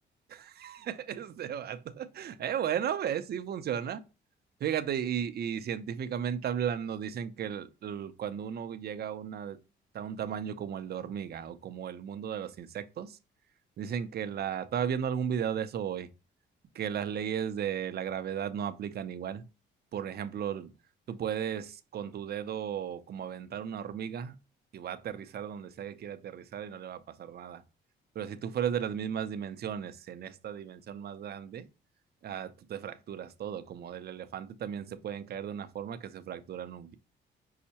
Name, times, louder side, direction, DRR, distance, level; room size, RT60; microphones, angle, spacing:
voice 1, 0.6-4.0 4.6-9.6 9.9-13.2 13.8-16.1 16.7-19.4 19.9-20.7 21.1-24.4 24.7-27.6 28.2-31.7 32.2-37.0, right 8 dB, 55° right, 0.5 m, -35 dB
5.5 x 2.1 x 2.8 m
cardioid pair, 90°, 20 cm